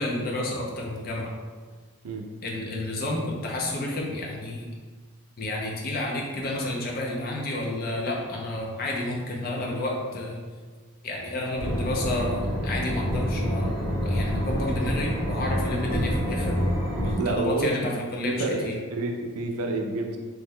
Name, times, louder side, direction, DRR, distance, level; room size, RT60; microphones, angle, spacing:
voice 1, 0.0-1.3 2.4-4.7 5.4-10.4 11.0-13.7 14.0-16.6 17.0-18.7, left 1 dB, 40° left, -2 dB, 0.5 m, -30 dB
sound 1, 11.6-17.1, equal, 5° right, 0.8 m, -27 dB
voice 2, 17.0-18.0 18.3-20.2, right 2 dB, 85° right, 3 dB, 0.4 m, -29 dB
3.1 x 2.1 x 3.5 m, 1.5 s
head